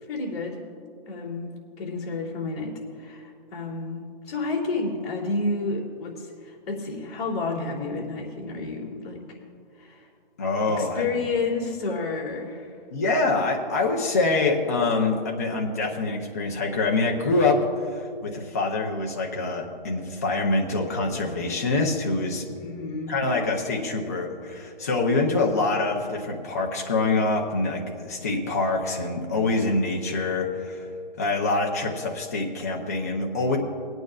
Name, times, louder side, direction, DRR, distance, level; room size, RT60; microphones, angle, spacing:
voice 1, 0.1-0.6 1.1-1.5 1.8-9.2 9.8-10.1 10.8-12.7 22.6-23.1, left 3 dB, 40° left, -6 dB, 2.9 m, -30 dB
voice 2, 10.4-11.3 12.9-22.5 23.1-30.9 31.2-33.6, left 3 dB, 15° left, -1 dB, 0.6 m, -25 dB
25.5 x 9.0 x 2.4 m, 2.4 s
hypercardioid pair, 175°, 29 cm